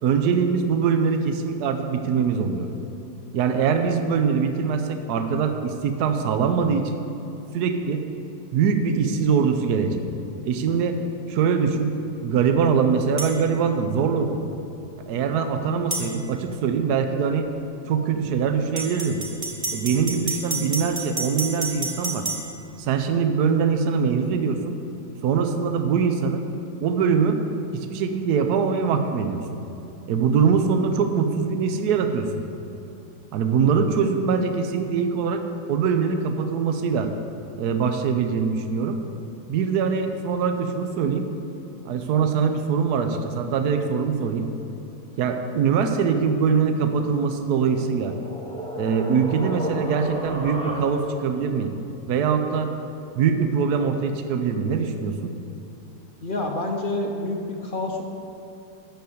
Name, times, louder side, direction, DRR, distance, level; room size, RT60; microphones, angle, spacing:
voice 1, 0.0-2.7 3.3-7.0 7.5-8.0 8.5-10.0 10.5-11.0 11.3-11.9 12.2-14.5 15.1-17.5 17.9-19.2 19.7-22.3 22.8-24.7 25.2-26.4 26.8-27.4 27.7-29.6 30.1-32.3 33.3-35.4 35.7-37.1 37.6-39.0 39.5-41.3 41.8-44.5 45.2-48.1 48.8-51.7 52.1-52.7 53.1-55.3, right 6 dB, 75° right, 6 dB, 1.2 m, -23 dB
sound 1, 13.2-13.3 15.9-16.1 18.8-22.4, right 2 dB, 20° right, 1.7 m, -29 dB
sound 2, 47.5-51.3, equal, 5° left, 1.2 m, -33 dB
voice 2, 56.2-58.0, left 2 dB, 50° left, 1 dB, 0.6 m, -28 dB
12.5 x 4.6 x 7.8 m, 3.0 s
omnidirectional pair, 1.8 m